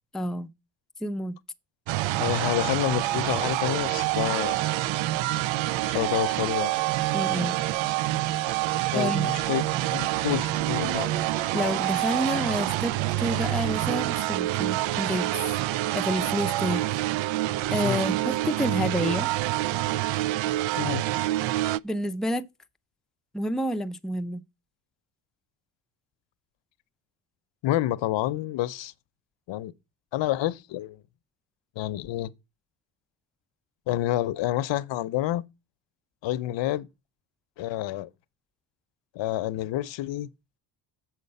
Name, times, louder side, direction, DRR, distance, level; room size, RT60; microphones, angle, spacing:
voice 1, 0.1-0.5 1.0-1.4 7.1-7.6 8.9-9.3 11.5-15.3 15.9-16.8 17.7-19.3 21.8-22.5 23.3-24.4, equal, ahead, 0.5 m, -29 dB
sound 1, 1.9-21.8, right 16 dB, 85° right, 0.5 m, -27 dB
voice 2, 2.2-4.6 5.9-6.7 8.9-9.6 9.9-11.1 17.8-18.0 20.8-21.0 27.6-28.9 29.5-29.7 30.1-31.0 31.8-32.3 33.9-35.4 36.2-36.9 37.6-38.1 39.1-40.3, left 14 dB, 75° left, 0.7 m, -28 dB
7.8 x 6.6 x 5.3 m
cardioid pair, 120°, 45 cm